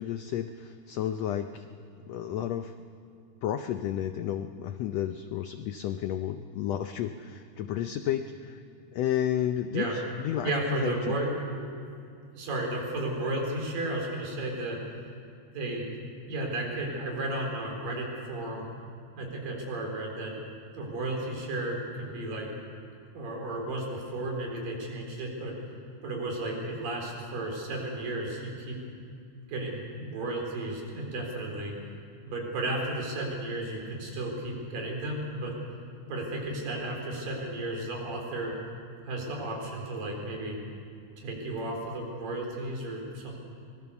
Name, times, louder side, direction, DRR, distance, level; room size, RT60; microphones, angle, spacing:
voice 1, 0.0-1.7 2.0-2.7 3.4-8.6 8.9-11.2, left 10 dB, 85° left, 8 dB, 1.4 m, -32 dB
voice 2, 10.4-11.9 12.3-14.8 15.5-18.7 19.2-20.3 20.7-22.5 23.1-25.6 26.0-28.8 29.5-31.8 32.3-35.5 36.1-38.6 39.0-40.6 41.2-43.4, right 2 dB, 90° right, 0 dB, 5.7 m, -33 dB
24.5 x 20.0 x 7.0 m, 2.4 s
omnidirectional pair, 3.8 m